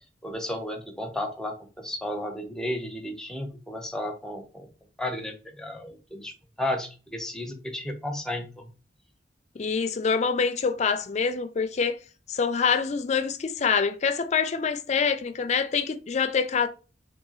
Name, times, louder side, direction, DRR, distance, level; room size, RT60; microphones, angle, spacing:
voice 1, 0.2-4.7 5.0-8.7, left 1 dB, 5° left, 0.6 m, -33 dB
voice 2, 9.6-12.0 12.3-16.7, left 6 dB, 40° left, 0.4 m, -25 dB
2.7 x 2.7 x 3.9 m
head